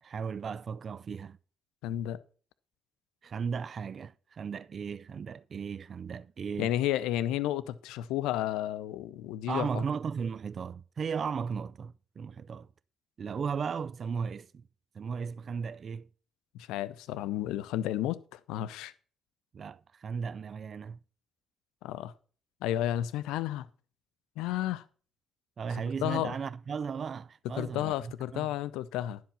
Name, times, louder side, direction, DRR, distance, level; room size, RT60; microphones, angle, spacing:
voice 1, 0.0-1.4 3.2-6.7 9.5-12.7 13.2-14.6 14.9-16.1 19.5-21.0 25.6-28.6, right 6 dB, 45° right, 0.5 m, -36 dB
voice 2, 1.8-2.2 6.6-9.8 16.6-18.9 21.8-22.1 22.6-23.7 24.4-24.8 26.0-26.3 27.6-29.2, left 13 dB, 70° left, 0.6 m, -32 dB
11.0 x 7.7 x 5.7 m
figure-of-eight pair, 45°, 0 cm